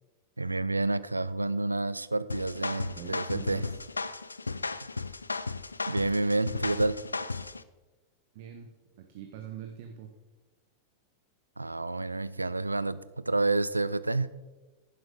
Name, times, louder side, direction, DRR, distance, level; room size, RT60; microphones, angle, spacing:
voice 1, 0.4-3.6 4.8-4.9 5.9-7.0 11.6-14.3, right 2 dB, 80° right, 0.4 m, -29 dB
sound 1, 2.3-7.6, left 3 dB, 80° left, 0.3 m, -35 dB
voice 2, 2.9-3.8 8.3-8.7 9.0-10.1, right 9 dB, 50° right, 0.9 m, -43 dB
11.0 x 10.5 x 3.7 m
figure-of-eight pair, 90°, 0 cm